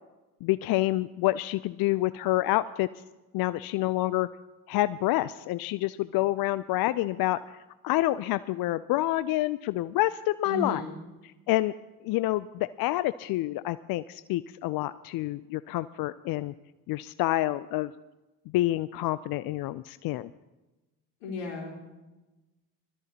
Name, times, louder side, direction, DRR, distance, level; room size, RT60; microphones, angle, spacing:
voice 1, 0.4-2.9 3.3-4.3 4.7-7.4 7.8-10.8 11.5-11.7 12.0-16.5 16.9-17.9 18.5-20.3, left 16 dB, 55° left, 15 dB, 0.5 m, -28 dB
voice 2, 10.4-11.0 21.2-21.8, left 2 dB, 80° left, -1 dB, 3.7 m, -34 dB
20.5 x 13.0 x 2.9 m, 1.1 s
hypercardioid pair, 55°, 44 cm